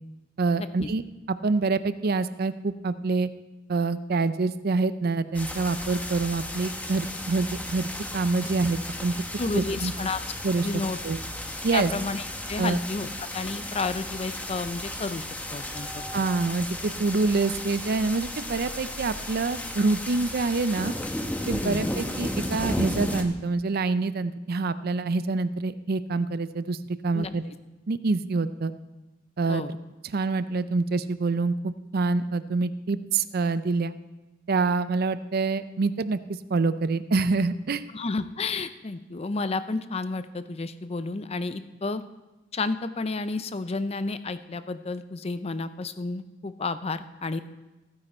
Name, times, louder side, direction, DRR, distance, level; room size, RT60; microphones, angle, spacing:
voice 1, 0.4-1.0 1.4-3.3 3.7-9.1 9.5-9.9 10.4-11.2 11.6-11.9 12.6-12.8 16.1-20.9 21.5-27.4 27.9-28.7 29.4-29.6 30.1-34.0 34.5-36.2 36.5-37.8, right 3 dB, 50° right, 14 dB, 0.5 m, -26 dB
sound 1, 5.3-23.2, left 1 dB, 10° left, 1.0 m, -34 dB
voice 2, 9.4-10.2 10.6-11.0 11.7-13.1 13.3-16.1 21.6-21.8 27.1-27.3 29.5-29.7 37.9-42.0 42.5-47.4, left 3 dB, 30° left, 12 dB, 0.5 m, -31 dB
15.0 x 9.7 x 4.3 m, 1.1 s
head